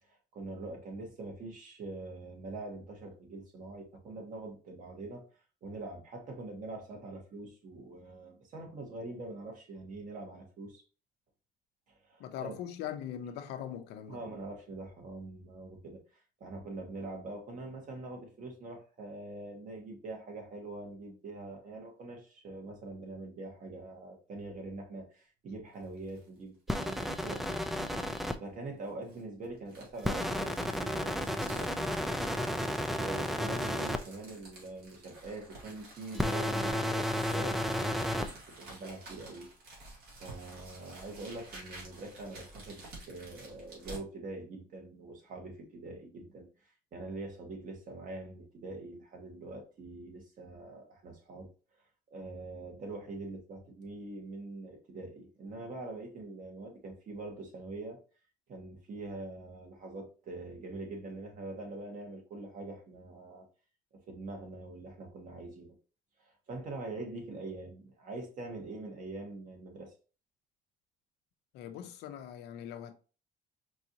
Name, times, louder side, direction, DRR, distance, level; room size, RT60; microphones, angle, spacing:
voice 1, 0.0-5.2 5.6-10.8 11.9-12.6 14.1-27.6 28.0-31.8 32.9-39.5 39.7-39.8 40.2-51.5 52.1-58.0 58.5-63.5 64.1-65.7 66.2-69.9, right 2 dB, 50° right, 1.5 m, -44 dB
voice 2, 12.2-14.2 71.5-72.9, left 9 dB, 85° left, 0.6 m, -41 dB
sound 1, 25.7-26.3 26.7-26.8 27.4-28.0 28.8-44.0, right 2 dB, 70° right, 2.0 m, -51 dB
sound 2, 26.7-28.3 30.0-34.0 36.1-38.3, equal, ahead, 0.4 m, -32 dB
4.7 x 2.6 x 2.8 m
cardioid pair, 110°, 17 cm